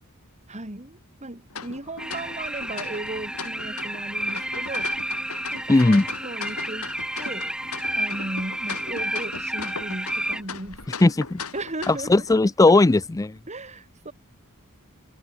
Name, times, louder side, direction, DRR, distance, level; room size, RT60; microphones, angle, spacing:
voice 1, 0.5-4.9 5.5-6.9 7.2-7.5 7.9-11.0 11.5-12.3 12.7-12.8 13.5-14.1, right 2 dB, 30° right, 2.9 m, -36 dB
sound 1, 1.5-12.3, left 5 dB, 70° left, 6.8 m, -38 dB
sound 2, 2.0-10.4, right 1 dB, 5° right, 0.8 m, -31 dB
voice 2, 5.7-6.1 11.0-11.4 11.9-13.4, left 2 dB, 15° left, 0.4 m, -18 dB
head